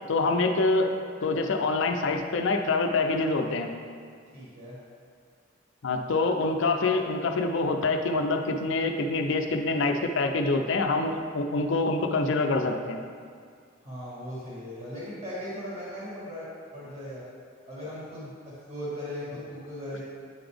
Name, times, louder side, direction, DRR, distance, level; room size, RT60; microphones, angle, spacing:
voice 1, 0.1-0.9 1.2-3.7 5.8-13.0, left 3 dB, 65° left, 4 dB, 0.5 m, -26 dB
voice 2, 4.3-4.8 13.8-17.2 17.7-20.0, equal, 35° right, -9 dB, 1.6 m, -38 dB
8.7 x 3.9 x 3.4 m, 2.1 s
head